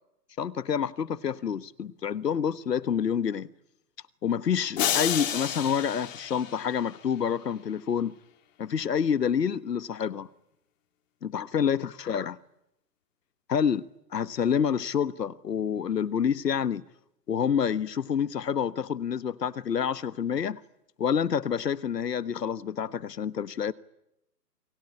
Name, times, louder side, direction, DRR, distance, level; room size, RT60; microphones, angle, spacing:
voice 1, 0.4-3.5 4.2-8.1 8.6-10.3 11.2-12.4 13.5-13.9 14.1-16.8 17.3-20.6 21.0-23.7, left 7 dB, 75° left, 1.5 m, -28 dB
sound 1, 4.8-7.1, left 9 dB, 50° left, 4.3 m, -30 dB
29.0 x 20.5 x 10.0 m
hypercardioid pair, 145°, 49 cm